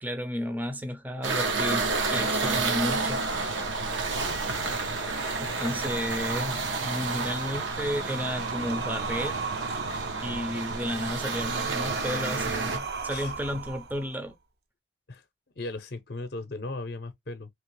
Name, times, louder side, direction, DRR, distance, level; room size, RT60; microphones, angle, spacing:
voice 1, 0.0-3.2 5.4-9.4 10.2-14.4, equal, 10° right, 0.5 m, -33 dB
sound 1, 1.2-12.8, right 3 dB, 85° right, 0.9 m, -30 dB
sound 2, 1.3-14.3, right 4 dB, 55° right, 0.6 m, -37 dB
voice 2, 4.0-4.9 13.1-13.3 15.1-15.2 15.6-17.5, left 2 dB, 55° left, 0.6 m, -38 dB
3.1 x 2.9 x 3.1 m
head